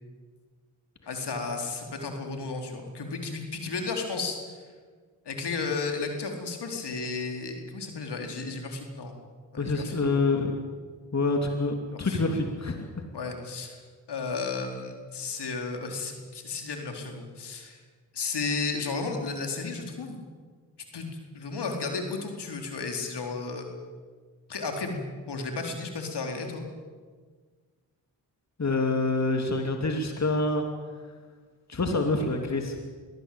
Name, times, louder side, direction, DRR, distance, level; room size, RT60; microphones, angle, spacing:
voice 1, 1.1-4.6 5.3-9.1 9.5-10.0 11.9-12.3 13.1-13.8 14.1-17.8 18.1-20.2 20.9-21.1 21.3-23.7 24.5-25.0 25.3-26.7, left 4 dB, 65° left, 3 dB, 4.3 m, -33 dB
voice 2, 9.6-10.5 11.1-13.0 28.6-30.7 31.7-32.8, left 3 dB, 40° left, 4 dB, 3.0 m, -26 dB
22.5 x 17.5 x 8.8 m, 1.5 s
supercardioid pair, 40°, 43 cm